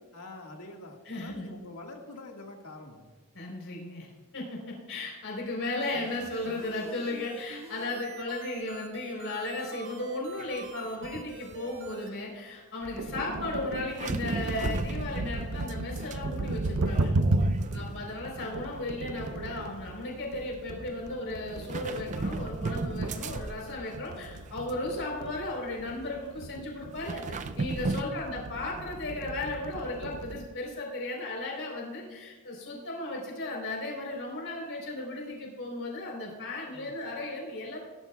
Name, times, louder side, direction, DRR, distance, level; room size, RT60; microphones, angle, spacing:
voice 1, 0.1-3.0 13.0-13.2 17.6-18.1 27.8-28.3 36.7-36.9, left 2 dB, 90° left, 1 dB, 1.8 m, -45 dB
voice 2, 1.1-1.5 3.3-4.1 4.3-17.1 17.4-37.9, left 2 dB, 65° left, -1 dB, 3.9 m, -35 dB
sound 1, 5.8-12.1, right 3 dB, 60° right, 1.7 m, -47 dB
sound 2, 10.4-10.7 11.0-11.9 13.9-16.2 16.4-18.2 18.4-18.8 19.9-20.0 21.6-24.0 24.4-25.1 25.5-25.6 26.9-28.0, right 3 dB, 35° right, 0.4 m, -36 dB
sound 3, 12.8-30.4, right 2 dB, 75° right, 0.7 m, -34 dB
17.0 x 12.5 x 2.4 m, 1.3 s
head